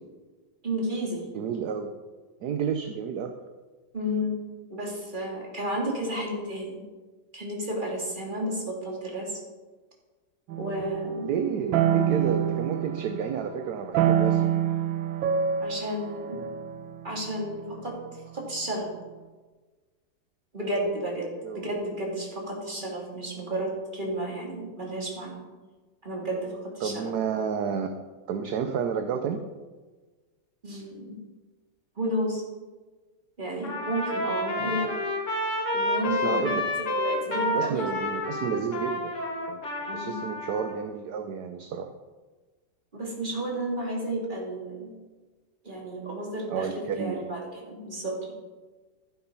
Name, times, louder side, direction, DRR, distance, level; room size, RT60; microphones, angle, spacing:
voice 1, 0.6-1.3 3.9-4.4 4.7-6.8 7.3-9.4 10.6-11.3 15.6-16.4 17.0-18.0 18.3-18.9 20.5-25.4 26.0-27.1 30.6-31.2 32.0-32.4 33.4-34.9 35.7-36.5 36.9-37.9 39.9-40.2 42.9-44.9 45.6-48.3, right 1 dB, 25° right, -2 dB, 2.7 m, -32 dB
voice 2, 1.3-1.9 2.4-3.3 11.2-14.6 21.4-21.6 26.8-27.9 28.3-29.4 34.5-34.8 36.1-36.7 37.3-39.1 39.5-41.9 46.5-47.3, right 7 dB, 65° right, 7 dB, 1.2 m, -31 dB
sound 1, 10.5-13.5 13.9-17.8, right 9 dB, 85° right, 1.5 m, -26 dB
Trumpet, 33.6-40.7, left 1 dB, 40° left, 2.2 m, -29 dB
12.5 x 7.7 x 5.5 m, 1.3 s
omnidirectional pair, 2.0 m